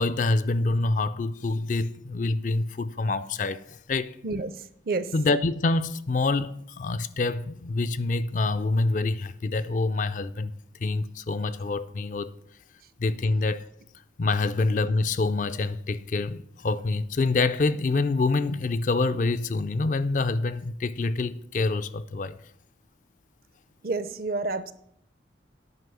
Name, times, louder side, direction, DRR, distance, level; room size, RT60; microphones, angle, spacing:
voice 1, 0.0-4.2 5.1-10.5 10.8-12.3 13.0-13.7 14.2-22.4, left 3 dB, 45° left, 0.4 m, -26 dB
voice 2, 23.8-24.7, right 3 dB, 50° right, 0.6 m, -29 dB
9.6 x 5.4 x 6.8 m
head